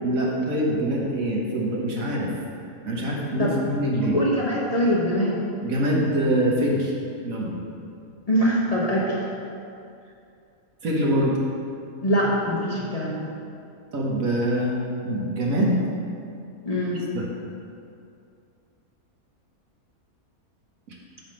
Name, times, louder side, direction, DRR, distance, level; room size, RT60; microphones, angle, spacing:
voice 1, 0.0-2.3 2.8-4.2 5.6-6.9 7.2-7.6 10.8-11.4 13.9-14.7 15.0-15.8 17.1-17.3 20.9-21.0, right 1 dB, 70° right, -3 dB, 1.6 m, -24 dB
voice 2, 4.1-5.4 8.3-9.3 12.0-13.3 16.7-17.0, equal, 35° left, -6 dB, 0.8 m, -23 dB
8.7 x 3.6 x 6.4 m, 2.5 s
omnidirectional pair, 1.5 m